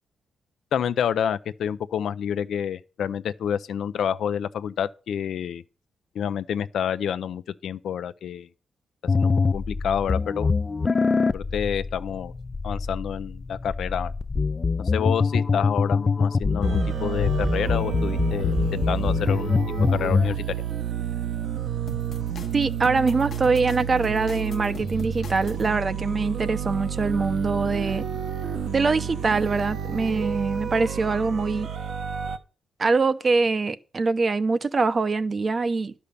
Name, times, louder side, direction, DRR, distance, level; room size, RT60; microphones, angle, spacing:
voice 1, 0.7-5.6 6.1-8.5 9.1-10.5 11.3-12.3 12.6-14.1 14.9-20.4, left 8 dB, 70° left, 0.6 m, -28 dB
sound 1, 9.1-20.3, left 4 dB, 30° left, 0.4 m, -24 dB
sound 2, 16.6-32.4, right 9 dB, 65° right, 1.0 m, -30 dB
sound 3, 21.9-25.7, left 5 dB, 50° left, 1.0 m, -42 dB
voice 2, 22.5-28.0 28.7-31.7 32.8-35.9, right 4 dB, 30° right, 0.7 m, -23 dB
11.5 x 5.5 x 6.8 m
cardioid pair, 135°, 0 cm